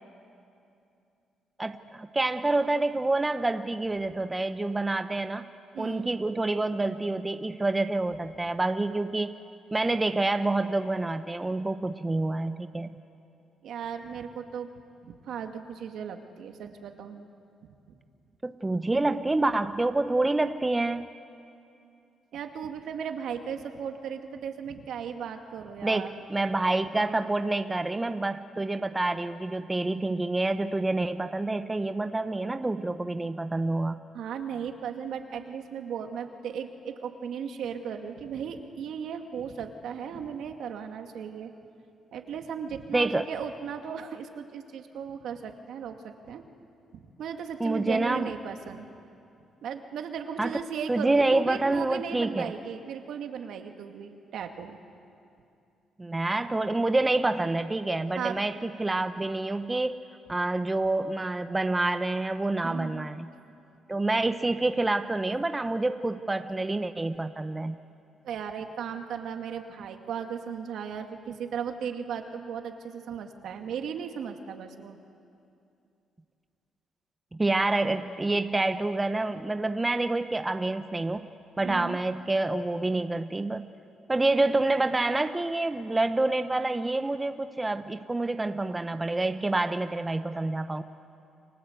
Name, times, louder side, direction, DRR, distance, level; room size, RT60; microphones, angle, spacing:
voice 1, 1.6-5.5 5.8-9.4 9.7-12.9 18.4-21.1 25.8-34.0 42.9-43.3 47.6-48.3 50.4-50.6 50.9-52.5 56.0-60.0 60.3-63.3 63.9-67.8 77.3-81.3 81.6-83.7 84.1-90.8, right 2 dB, 15° right, 9 dB, 0.9 m, -27 dB
voice 2, 5.7-6.2 13.6-14.7 15.0-17.2 17.9-18.0 22.3-26.1 34.1-41.5 42.1-46.4 46.9-48.9 49.6-54.8 58.1-58.4 62.6-63.1 68.2-75.0 81.6-82.0, right 7 dB, 75° right, 5 dB, 2.3 m, -36 dB
30.0 x 24.5 x 8.2 m, 2.6 s
cardioid pair, 90°, 0 cm